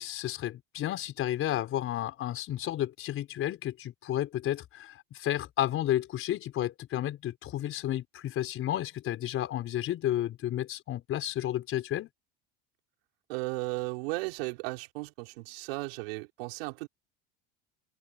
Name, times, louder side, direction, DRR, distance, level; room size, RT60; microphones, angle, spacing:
voice 1, 0.0-12.1, left 12 dB, 45° left, 5.0 m, -32 dB
voice 2, 13.3-16.9, right 25 dB, 80° right, 5.0 m, -35 dB
supercardioid pair, 120°, 30 cm